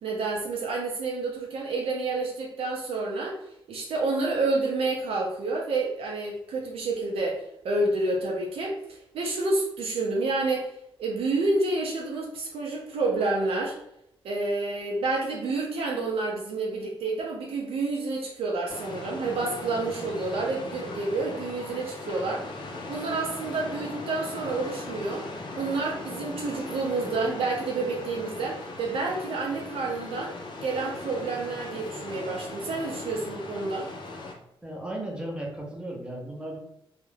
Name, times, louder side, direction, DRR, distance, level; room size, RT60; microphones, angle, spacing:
voice 1, 0.0-3.4 3.7-7.4 7.6-8.8 9.1-10.7 11.0-13.7 14.2-22.5 22.9-25.2 25.6-30.3 30.6-33.9, right 3 dB, 90° right, -2 dB, 0.5 m, -29 dB
sound 1, 18.7-34.3, left 2 dB, 55° left, 0.4 m, -39 dB
voice 2, 34.6-36.6, right 1 dB, 10° right, -2 dB, 0.5 m, -35 dB
2.3 x 2.0 x 3.1 m, 0.76 s
wide cardioid pair, 170°, 9 cm